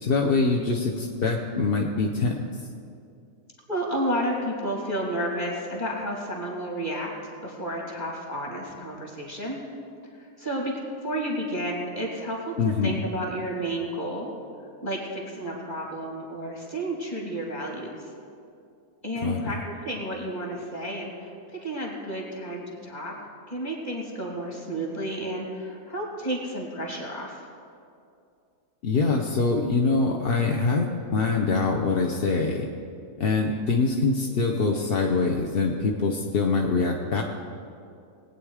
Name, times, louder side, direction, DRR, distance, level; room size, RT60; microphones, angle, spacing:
voice 1, 0.0-2.4 12.6-13.0 19.2-19.4 28.8-30.9 31.1-32.7 33.2-37.2, left 4 dB, 45° left, 1 dB, 0.8 m, -24 dB
voice 2, 3.7-7.1 7.4-9.6 10.2-10.7 11.0-14.3 14.8-18.1 19.0-23.1 23.5-27.5, right 1 dB, 25° left, -2 dB, 2.8 m, -31 dB
20.5 x 9.0 x 4.9 m, 2.5 s
omnidirectional pair, 1.8 m